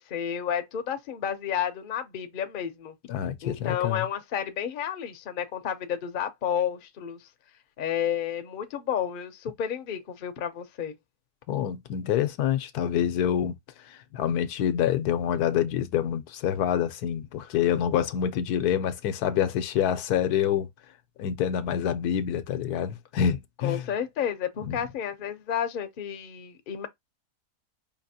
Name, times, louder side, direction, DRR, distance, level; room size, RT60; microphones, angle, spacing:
voice 1, 0.0-2.9 3.4-7.3 7.8-10.9 23.6-26.9, left 9 dB, 50° left, 0.6 m, -31 dB
voice 2, 3.1-4.1 11.5-13.5 13.8-20.7 21.2-23.8 24.6-24.8, left 9 dB, 80° left, 1.1 m, -26 dB
5.0 x 2.9 x 2.7 m
omnidirectional pair, 1.7 m